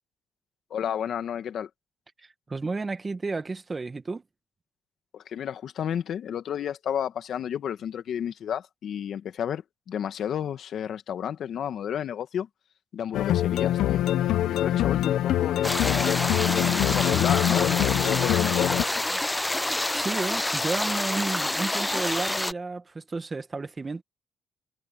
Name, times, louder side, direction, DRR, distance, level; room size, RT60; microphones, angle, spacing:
voice 1, 0.7-1.7 5.1-12.5 12.9-14.0 14.4-19.2, left 9 dB, 65° left, 1.8 m, -32 dB
voice 2, 2.2-4.2 19.9-24.0, right 3 dB, 25° right, 1.9 m, -32 dB
sound 1, 13.1-18.8, left 12 dB, 85° left, 0.9 m, -24 dB
sound 2, 15.6-22.5, left 1 dB, 10° left, 0.4 m, -28 dB
cardioid pair, 90°, 0 cm